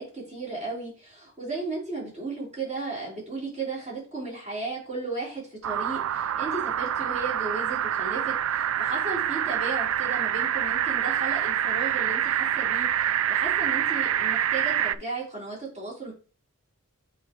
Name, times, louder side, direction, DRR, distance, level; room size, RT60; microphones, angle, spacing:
voice 1, 0.0-16.1, right 3 dB, 30° right, -6 dB, 3.7 m, -35 dB
sound 1, 5.6-14.9, right 10 dB, 65° right, 0.3 m, -26 dB
7.7 x 4.5 x 3.0 m, 0.37 s
head